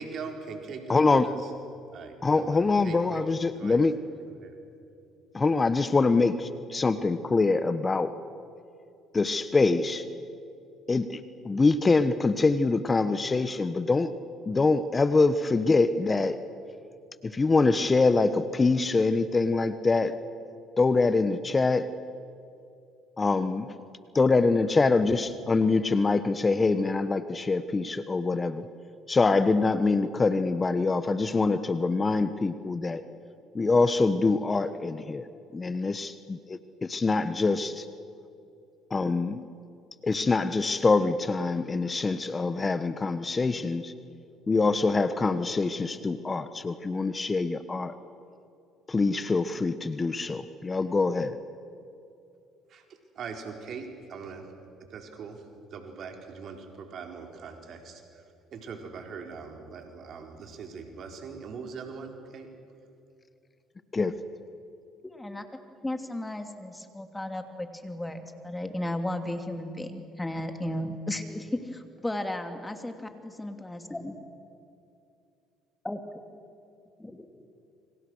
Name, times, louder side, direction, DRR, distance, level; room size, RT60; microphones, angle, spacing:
voice 1, 0.0-1.5 1.9-3.2 3.5-3.9 4.4-4.6 52.7-52.8 53.1-54.5 54.9-55.5 55.7-58.2 58.5-62.5, right 5 dB, 55° right, 3 dB, 4.3 m, -41 dB
voice 2, 0.9-1.3 2.2-3.9 5.3-8.1 9.1-10.0 10.9-11.2 11.4-14.1 14.5-16.4 17.2-20.1 20.8-21.9 23.2-23.7 24.1-28.6 29.1-33.0 33.5-35.3 35.5-37.8 38.9-39.4 40.0-43.9 44.5-47.9 48.9-51.4 63.9-64.1, left 3 dB, 30° left, 12 dB, 1.2 m, -24 dB
voice 3, 65.0-65.5 65.8-74.1 75.8-76.0 77.0-77.3, left 1 dB, 10° left, 6 dB, 2.9 m, -34 dB
29.0 x 26.0 x 6.4 m, 2.6 s
hypercardioid pair, 60°, 0 cm